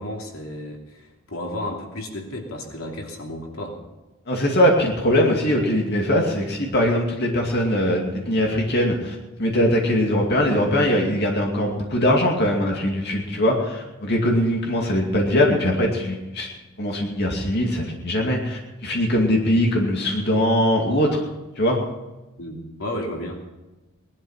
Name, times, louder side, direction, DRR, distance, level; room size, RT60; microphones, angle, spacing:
voice 1, 0.0-3.8 22.4-23.5, left 1 dB, 85° left, 1 dB, 3.0 m, -33 dB
voice 2, 4.3-16.5 16.8-21.3 21.6-21.8, equal, 50° left, 0 dB, 2.5 m, -21 dB
19.5 x 12.0 x 5.8 m, 1.1 s
head